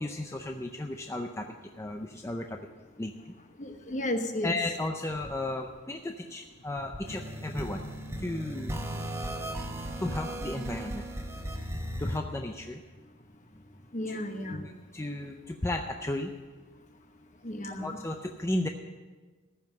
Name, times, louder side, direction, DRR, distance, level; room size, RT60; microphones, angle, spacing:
voice 1, 0.0-1.5 1.8-2.5 3.0-3.1 4.4-7.9 8.2-8.7 10.0-11.1 12.0-12.8 14.1-14.2 14.4-16.3 17.8-18.7, left 1 dB, 15° left, 4 dB, 0.5 m, -34 dB
voice 2, 3.6-4.6 13.9-14.7 17.4-18.0, left 1 dB, 35° left, 6 dB, 1.1 m, -33 dB
sound 1, 7.0-12.2, right 1 dB, 15° right, 1.0 m, -36 dB
14.5 x 5.6 x 9.0 m, 1.3 s
head